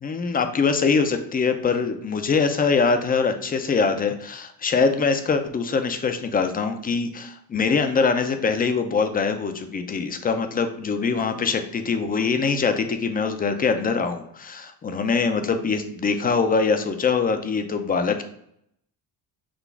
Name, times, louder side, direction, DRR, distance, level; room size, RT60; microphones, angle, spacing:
voice 1, 0.0-18.2, left 5 dB, 25° left, 8 dB, 0.4 m, -23 dB
6.0 x 2.3 x 3.4 m, 0.73 s
cardioid pair, 140°, 40 cm